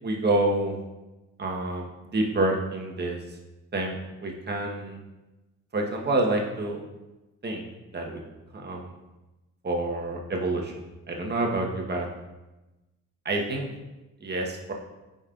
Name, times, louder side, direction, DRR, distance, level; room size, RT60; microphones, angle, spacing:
voice 1, 0.0-0.8 1.4-3.2 3.7-3.9 4.2-5.0 5.7-6.8 7.4-7.7 7.9-8.2 8.5-8.9 9.6-10.7 11.1-12.1 13.2-13.7 14.2-14.7, right 2 dB, 35° right, 1 dB, 1.2 m, -27 dB
9.6 x 5.2 x 2.5 m, 1.1 s
cardioid pair, 90°, 30 cm